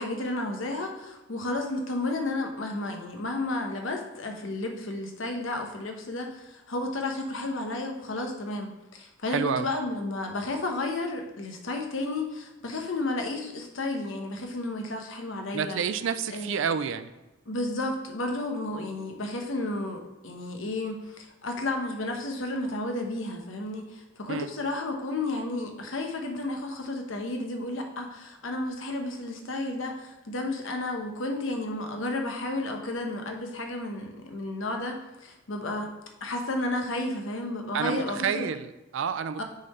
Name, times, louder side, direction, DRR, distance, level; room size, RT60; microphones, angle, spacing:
voice 1, 0.0-15.8 16.3-16.6 17.5-35.9 36.2-38.5 39.4-39.5, left 2 dB, 70° left, 3 dB, 0.9 m, -32 dB
voice 2, 9.3-9.7 15.5-17.1 24.3-24.5 37.7-39.4, right 7 dB, 65° right, 11 dB, 0.4 m, -29 dB
6.4 x 3.9 x 4.2 m, 1.0 s
head